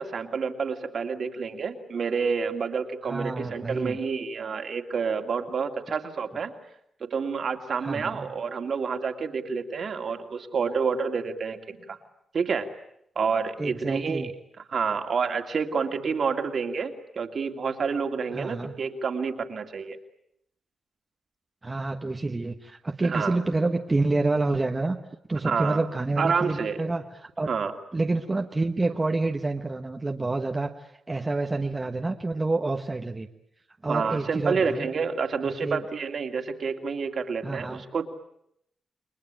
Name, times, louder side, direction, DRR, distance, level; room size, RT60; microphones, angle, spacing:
voice 1, 0.0-6.5 7.0-12.0 12.3-12.7 13.2-14.3 14.7-20.0 23.0-23.4 25.4-25.8 26.2-26.9 27.5-27.7 33.9-38.1, right 5 dB, 55° right, 5 dB, 2.6 m, -29 dB
voice 2, 3.0-4.0 7.8-8.3 13.6-14.3 18.3-18.7 21.6-25.0 25.3-27.5 27.9-33.3 33.8-34.9 35.4-35.8 37.4-37.8, right 2 dB, 20° right, 3 dB, 1.3 m, -28 dB
29.5 x 22.0 x 9.0 m, 0.76 s
cardioid pair, 115°, 0 cm